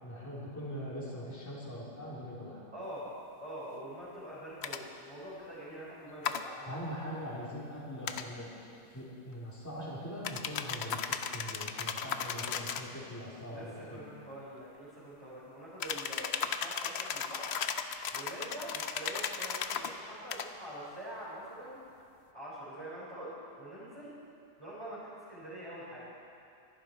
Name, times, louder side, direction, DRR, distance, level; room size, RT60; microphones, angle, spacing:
voice 1, 0.0-2.6 6.7-8.5 8.9-11.0 11.3-14.0, equal, 10° left, -7 dB, 3.2 m, -42 dB
voice 2, 2.7-3.1 3.4-6.8 13.5-17.5 18.1-21.8 22.3-23.3 23.6-24.1 24.6-26.0, right 1 dB, 20° right, -11 dB, 4.3 m, -45 dB
sound 1, 4.6-4.8 6.2-6.4 8.0-8.3 10.2-12.9 15.8-19.9 20.3-20.5, left 7 dB, 55° left, 0.8 m, -36 dB
24.5 x 11.5 x 4.5 m, 2.5 s
omnidirectional pair, 1.7 m